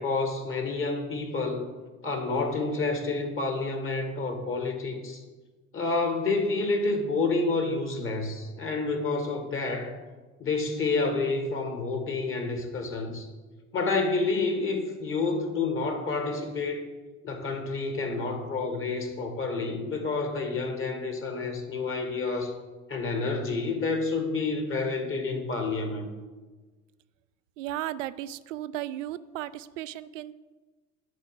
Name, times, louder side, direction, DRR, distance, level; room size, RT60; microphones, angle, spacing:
voice 1, 0.0-1.7 2.0-5.2 5.7-9.9 10.4-13.3 13.7-16.9 17.2-22.5 22.9-26.1, left 3 dB, 30° left, 5 dB, 1.7 m, -29 dB
voice 2, 27.6-30.3, right 13 dB, 60° right, 15 dB, 0.5 m, -35 dB
11.0 x 4.3 x 7.5 m, 1.3 s
figure-of-eight pair, 65°, 43 cm